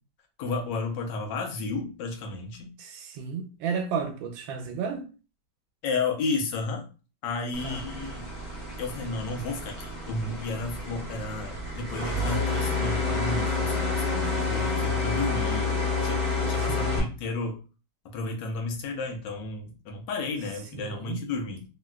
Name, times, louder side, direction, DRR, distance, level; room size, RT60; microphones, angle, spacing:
voice 1, 0.4-2.7 5.8-6.8 7.2-8.2 8.8-17.6 18.1-21.6, left 3 dB, 75° left, 1.3 m, -32 dB
voice 2, 2.8-5.1 7.6-7.8 16.5-17.1 20.7-21.2, right 6 dB, 85° right, 1.3 m, -33 dB
sound 1, 7.5-17.0, left 3 dB, 25° left, 1.2 m, -29 dB
3.2 x 2.7 x 2.2 m
omnidirectional pair, 2.0 m